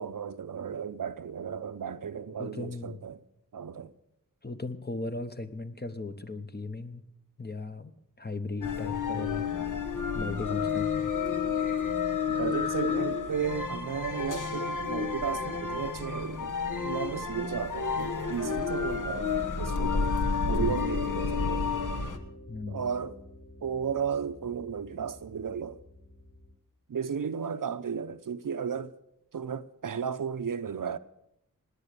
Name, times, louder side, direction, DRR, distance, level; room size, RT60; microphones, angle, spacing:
voice 1, 0.0-3.2 3.5-3.9 12.2-16.5 16.8-20.1 20.5-21.7 22.7-23.2 23.6-25.8 26.9-28.9 29.3-31.0, right 7 dB, 70° right, 0.7 m, -34 dB
voice 2, 2.4-3.0 4.4-7.0 7.4-7.9 8.2-9.5 10.1-11.1 20.4-20.8 22.5-22.8, left 3 dB, 30° left, 1.1 m, -37 dB
sound 1, 8.6-22.2, left 5 dB, 60° left, 1.3 m, -30 dB
Piano, 19.0-26.5, left 1 dB, 45° left, 6.3 m, -46 dB
18.0 x 9.8 x 6.8 m
wide cardioid pair, 70°, 34 cm